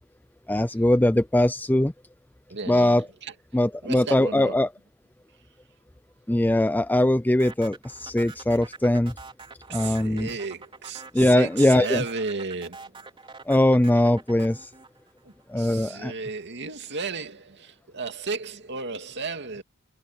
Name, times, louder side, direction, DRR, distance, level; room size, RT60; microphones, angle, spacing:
voice 1, 0.5-1.9 2.7-3.1 3.5-4.7 6.3-9.1 9.7-10.3 11.1-12.0 13.5-14.7 15.5-16.1, left 1 dB, 10° left, 0.5 m, -21 dB
voice 2, 2.5-3.0 3.8-4.6 9.7-12.9 15.2-19.6, right 4 dB, 55° right, 2.5 m, -34 dB
sound 1, 7.4-15.8, right 4 dB, 25° right, 3.7 m, -45 dB
head